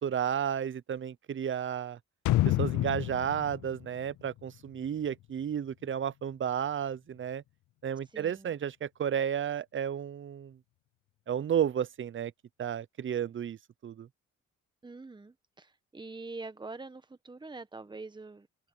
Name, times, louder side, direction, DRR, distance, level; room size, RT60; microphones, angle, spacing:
voice 1, 0.0-2.0 2.4-7.4 7.8-10.6 11.3-12.3 12.6-13.6 13.8-14.1, right 9 dB, 40° right, 0.7 m, -32 dB
sound 1, 2.3-5.1 5.4-5.5, left 15 dB, 80° left, 0.8 m, -29 dB
voice 2, 8.1-8.5 14.8-18.5, right 3 dB, 15° right, 1.4 m, -44 dB
open air
cardioid pair, 90°, 30 cm